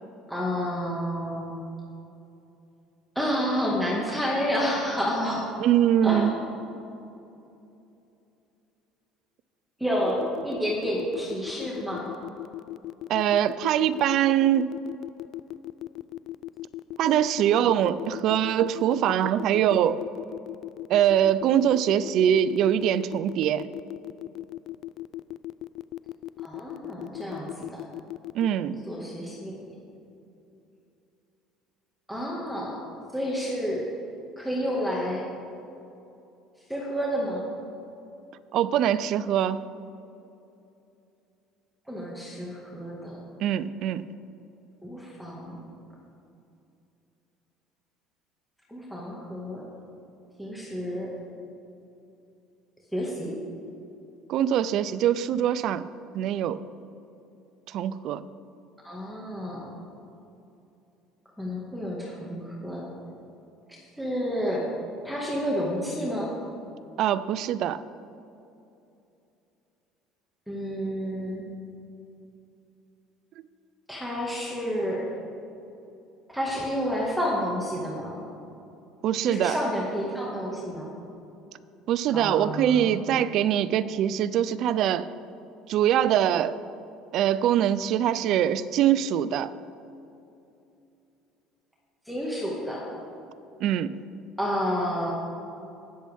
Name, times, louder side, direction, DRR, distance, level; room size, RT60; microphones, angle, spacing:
voice 1, 0.3-1.5 3.2-5.5 6.0-6.5 9.8-12.1 26.4-27.8 28.6-29.6 32.1-32.8 33.1-33.9 34.4-35.3 36.7-37.5 41.9-43.2 44.8-45.6 48.7-49.7 50.4-51.1 52.9-53.4 58.8-59.6 61.4-62.9 63.7-64.7 65.0-66.3 70.5-71.4 73.9-75.1 76.3-78.2 79.2-80.9 82.1-82.9 92.1-92.9 94.4-95.1, equal, ahead, -5 dB, 1.9 m, -30 dB
voice 2, 5.6-6.4 13.1-14.7 17.0-20.0 20.9-23.7 28.3-28.8 38.5-39.6 43.4-44.1 54.3-55.9 56.1-56.6 57.7-58.2 67.0-67.8 79.0-79.6 81.9-85.1 85.7-86.6 87.1-89.5 93.6-94.0, right 10 dB, 60° right, 15 dB, 0.4 m, -23 dB
sound 1, 10.0-28.5, left 15 dB, 55° left, 0.3 m, -37 dB
19.0 x 7.5 x 3.6 m, 2.7 s
supercardioid pair, 105°, 0 cm